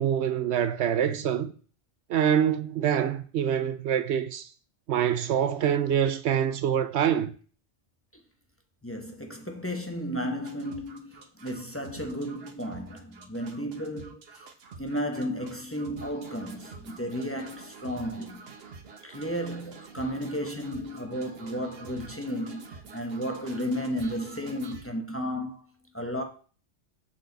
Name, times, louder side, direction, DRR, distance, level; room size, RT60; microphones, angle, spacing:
voice 1, 0.0-1.5 2.1-4.5 4.9-7.3, right 9 dB, 75° right, 0.9 m, -25 dB
voice 2, 8.8-14.4 14.8-18.5 19.0-26.2, equal, 10° left, 1.0 m, -33 dB
sound 1, 10.4-24.9, right 4 dB, 60° right, 1.2 m, -47 dB
7.1 x 6.6 x 4.0 m
omnidirectional pair, 1.2 m